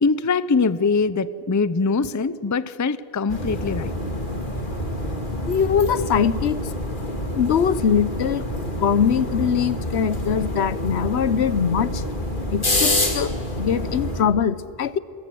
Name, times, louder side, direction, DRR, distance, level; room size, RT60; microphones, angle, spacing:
voice 1, 0.0-3.9 6.0-6.2, left 4 dB, 20° left, 16 dB, 0.5 m, -23 dB
sound 1, 3.3-14.2, left 1 dB, 50° left, 2.8 m, -27 dB
voice 2, 5.5-6.6 7.3-8.5 8.8-12.1 12.5-15.0, left 7 dB, 75° left, 17 dB, 1.1 m, -22 dB
30.0 x 23.5 x 7.7 m, 2.5 s
omnidirectional pair, 1.1 m